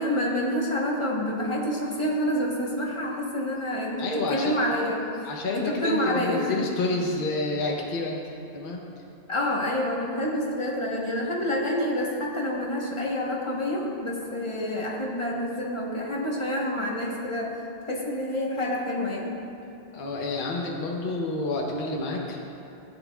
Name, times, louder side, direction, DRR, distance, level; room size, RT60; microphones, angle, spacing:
voice 1, 0.0-5.0 5.5-6.5 9.3-17.5 17.9-19.3, left 1 dB, 25° left, -2 dB, 1.2 m, -28 dB
voice 2, 4.0-4.6 5.2-8.8 19.9-22.4, left 2 dB, 50° left, -1 dB, 1.0 m, -29 dB
14.5 x 8.8 x 2.3 m, 2.7 s
omnidirectional pair, 1.2 m